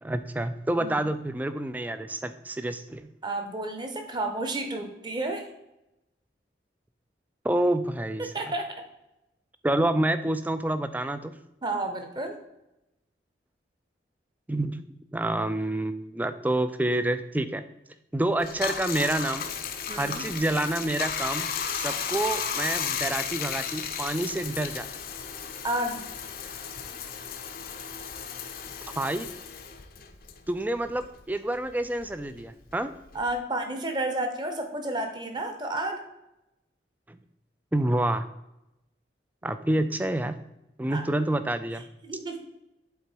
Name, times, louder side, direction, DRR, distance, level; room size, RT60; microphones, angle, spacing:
voice 1, 0.0-3.1 7.4-8.3 9.6-11.4 14.5-14.8 15.1-17.6 18.1-19.5 20.0-24.9 29.0-29.3 30.5-32.9 37.1-37.2 37.7-38.3 39.4-40.4 40.8-41.8, right 1 dB, 10° right, 11 dB, 0.3 m, -28 dB
voice 2, 3.2-5.5 8.2-8.7 11.6-12.3 19.9-20.3 25.6-26.0 33.1-36.0 39.4-39.5 40.9-41.1 42.0-42.4, right 2 dB, 25° right, 4 dB, 0.9 m, -31 dB
Bathtub (filling or washing), 18.4-31.2 31.5-33.4, left 7 dB, 50° left, 0.6 m, -34 dB
8.4 x 3.9 x 4.5 m, 0.89 s
head